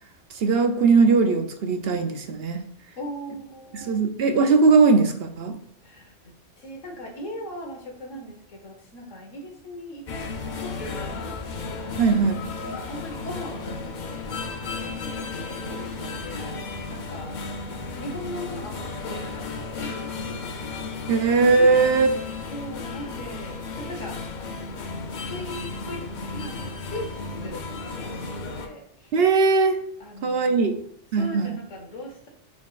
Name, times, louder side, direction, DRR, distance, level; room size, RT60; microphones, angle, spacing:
voice 1, 0.3-2.7 3.8-5.6 12.0-12.4 21.1-22.1 29.1-29.8 30.2-30.8 31.1-31.6, right 4 dB, 60° right, 6 dB, 0.8 m, -19 dB
voice 2, 3.0-4.0 5.8-10.3 10.6-11.4 11.8-14.2 14.7-16.5 16.9-17.4 17.9-20.5 21.6-22.0 22.5-24.2 25.1-27.1 27.4-29.1 30.0-30.7 31.1-32.3, equal, 85° left, 2 dB, 1.5 m, -39 dB
sound 1, 10.1-28.7, left 3 dB, 50° left, 0.7 m, -34 dB
9.5 x 4.4 x 2.4 m, 0.65 s
omnidirectional pair, 1.3 m